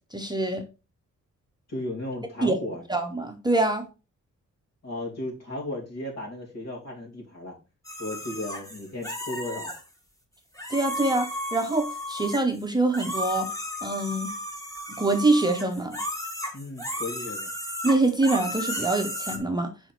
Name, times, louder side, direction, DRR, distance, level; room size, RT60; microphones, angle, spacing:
voice 1, 0.1-0.6 2.4-2.6 2.9-3.9 10.7-13.5 13.8-14.3 15.0-16.0 17.8-19.7, right 2 dB, 15° right, 4 dB, 0.8 m, -25 dB
voice 2, 1.7-2.8 4.8-7.5 8.0-9.7 16.5-17.5, left 1 dB, 55° left, 0 dB, 2.7 m, -35 dB
sound 1, 7.8-9.8 10.5-12.6 12.9-19.4, left 1 dB, 10° left, 1.5 m, -34 dB
6.8 x 5.1 x 4.5 m, 0.31 s
wide cardioid pair, 160°, 32 cm